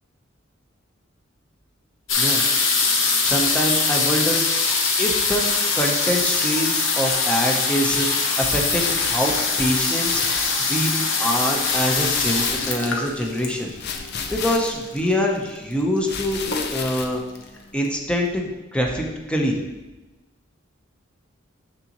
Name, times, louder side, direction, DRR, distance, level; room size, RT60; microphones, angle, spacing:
sound 1, 2.1-14.6 15.5-15.6 15.7-16.1 16.5-17.0 17.6-17.7 17.9-18.0, left 4 dB, 75° left, 1.1 m, -22 dB
voice 1, 3.2-4.4 5.0-5.4 5.7-10.4 10.7-10.9 11.2-13.7 14.1-16.4 16.7-17.2 17.7-19.5, equal, 5° left, 0 dB, 0.9 m, -24 dB
sound 2, 7.9-17.9, left 6 dB, 55° left, 0.6 m, -34 dB
6.9 x 6.7 x 3.1 m, 1.1 s
head